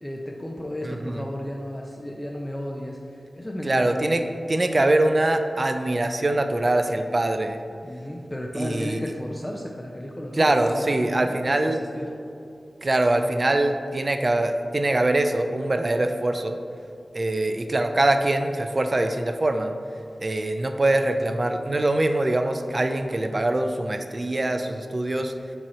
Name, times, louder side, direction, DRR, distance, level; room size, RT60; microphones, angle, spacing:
voice 1, 0.0-4.2 7.8-12.2, left 1 dB, 15° left, -1 dB, 0.6 m, -34 dB
voice 2, 0.9-1.2 3.6-4.2 4.5-7.6 8.5-9.0 10.4-11.8 12.8-16.6 17.1-19.7 20.2-25.3, right 2 dB, 45° right, 6 dB, 0.4 m, -23 dB
7.4 x 3.0 x 4.2 m, 2.5 s
cardioid pair, 40°, 0 cm